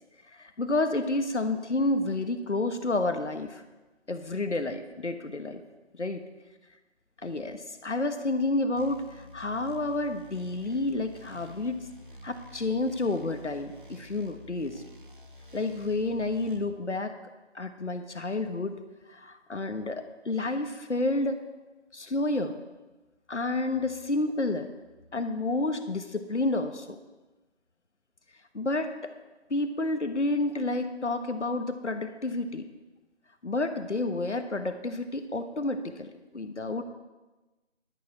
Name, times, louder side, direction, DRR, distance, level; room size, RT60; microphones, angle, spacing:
voice 1, 0.4-3.6 4.1-5.6 5.9-6.2 7.2-11.9 12.2-14.8 15.5-17.1 17.5-18.8 19.1-21.4 21.9-22.5 23.3-24.7 25.1-27.0 28.5-28.9 29.5-32.7 33.4-36.8, left 2 dB, 75° left, 8 dB, 1.3 m, -30 dB
sound 1, 8.8-16.7, left 1 dB, 45° right, 1.0 m, -49 dB
11.5 x 11.0 x 4.2 m, 1.2 s
figure-of-eight pair, 165°, 35 cm